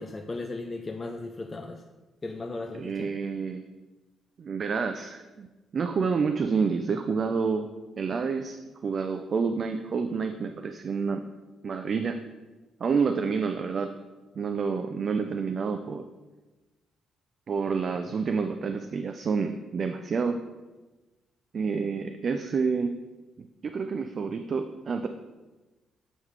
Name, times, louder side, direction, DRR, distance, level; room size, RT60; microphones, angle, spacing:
voice 1, 0.0-1.8 2.2-3.1, left 2 dB, 25° left, 3 dB, 0.5 m, -36 dB
voice 2, 2.8-3.6 4.4-5.5 5.7-7.7 8.0-11.2 11.6-12.2 12.8-13.9 14.4-16.0 17.5-20.4 21.5-22.9 23.4-25.1, right 5 dB, 50° right, 7 dB, 0.4 m, -28 dB
8.1 x 3.8 x 4.6 m, 1.2 s
cardioid pair, 90°, 0 cm